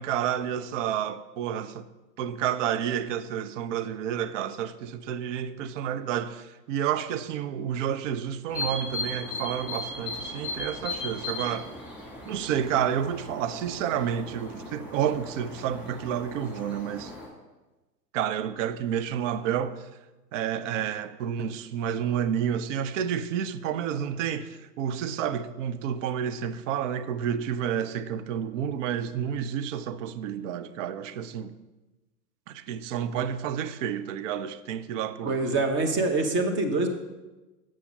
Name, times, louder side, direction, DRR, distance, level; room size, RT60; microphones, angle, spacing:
voice 1, 0.0-1.8 2.2-11.7 12.3-17.1 18.1-19.9 20.3-31.5 32.5-35.4, right 9 dB, 50° right, 0.6 m, -30 dB
sound 1, 8.5-17.3, left 2 dB, 5° right, 2.2 m, -37 dB
voice 2, 35.2-36.9, right 2 dB, 25° right, 1.0 m, -25 dB
7.6 x 5.7 x 5.2 m
hypercardioid pair, 110°, 48 cm